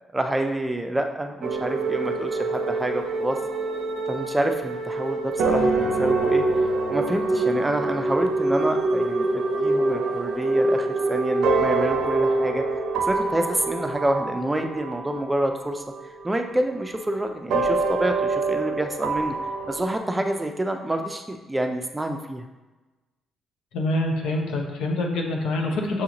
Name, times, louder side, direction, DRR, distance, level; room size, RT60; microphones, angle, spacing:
voice 1, 0.1-3.4 4.1-6.4 6.9-12.8 13.0-15.8 16.2-19.3 19.7-22.5, right 1 dB, 15° right, 4 dB, 0.4 m, -27 dB
sound 1, 1.4-16.5 17.5-20.0, right 3 dB, 80° right, 0.5 m, -25 dB
voice 2, 23.7-26.0, left 1 dB, 85° left, 1 dB, 0.7 m, -25 dB
6.2 x 2.4 x 2.9 m, 1.1 s
cardioid pair, 90°, 0 cm